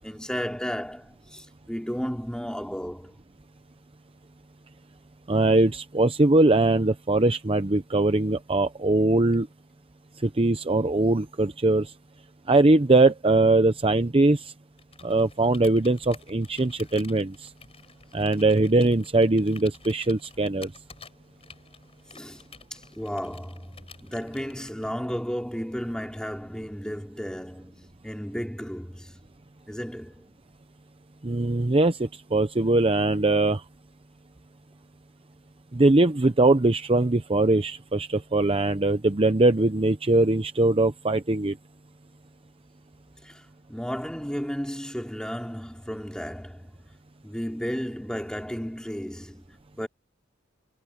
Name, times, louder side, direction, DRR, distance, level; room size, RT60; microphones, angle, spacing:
voice 1, 0.0-3.1 22.1-29.3 29.7-30.3 43.2-43.4 43.7-46.8 47.2-49.9, equal, 5° left, 4.7 m, -34 dB
voice 2, 5.3-9.5 10.2-11.9 12.5-14.5 15.0-17.5 18.1-20.7 31.2-33.6 35.7-41.5, right 2 dB, 30° right, 0.8 m, -21 dB
Computer keyboard, 14.8-25.1, left 5 dB, 30° left, 5.3 m, -50 dB
head